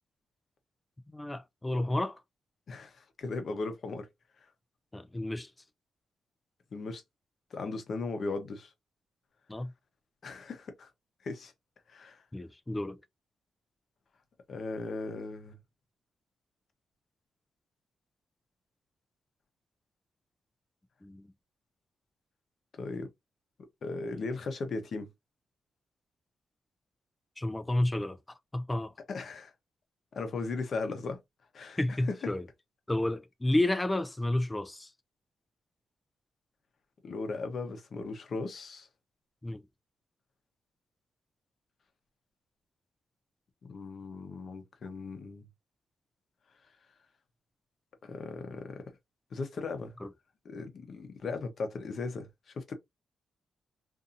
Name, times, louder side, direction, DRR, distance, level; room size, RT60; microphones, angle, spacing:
voice 1, 1.1-2.2 4.9-5.5 9.5-9.7 12.3-13.0 21.0-21.3 27.4-28.9 31.8-32.4 32.9-34.9 39.4-39.6 50.0-50.1, left 1 dB, 10° left, 0.4 m, -31 dB
voice 2, 2.7-4.1 6.7-7.0 7.5-8.7 10.2-10.9 11.2-11.5 11.9-12.2 14.5-15.6 22.8-23.1 23.8-25.1 29.1-29.5 30.1-31.2 31.5-32.2 37.0-38.9 43.6-45.5 48.0-48.8 49.3-50.0 50.4-52.7, left 3 dB, 50° left, 0.8 m, -37 dB
2.6 x 2.6 x 2.5 m
cardioid pair, 120°, 0 cm